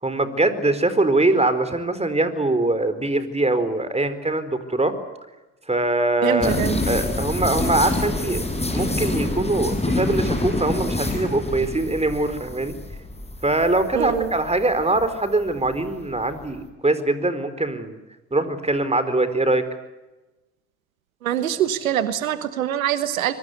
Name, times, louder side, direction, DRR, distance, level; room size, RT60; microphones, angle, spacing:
voice 1, 0.0-4.9 5.7-8.4 8.7-12.7 13.4-18.0 18.3-19.6, right 2 dB, 15° right, 11 dB, 4.4 m, -22 dB
voice 2, 6.2-6.8 13.9-14.3 21.2-23.3, right 10 dB, 85° right, 12 dB, 1.3 m, -24 dB
sound 1, 6.4-16.6, left 2 dB, 15° left, 6.9 m, -27 dB
26.0 x 23.0 x 8.1 m, 1.1 s
hypercardioid pair, 55°, 40 cm